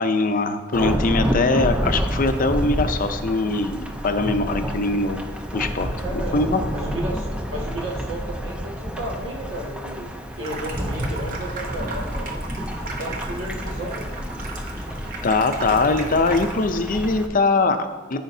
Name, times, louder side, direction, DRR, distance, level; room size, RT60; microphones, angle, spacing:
voice 1, 0.0-5.2 5.5-6.6 15.2-18.2, left 3 dB, 45° left, 8 dB, 0.5 m, -22 dB
Thunderstorm / Rain, 0.7-17.3, equal, 5° right, 0.5 m, -29 dB
voice 2, 6.0-6.4 6.7-10.1 10.4-12.4 12.8-14.1, right 1 dB, 75° right, -2 dB, 1.7 m, -33 dB
Water tap faucet / Sink (filling or washing), 10.3-16.8, right 3 dB, 45° right, 0.9 m, -36 dB
14.0 x 5.1 x 2.7 m, 1.3 s
head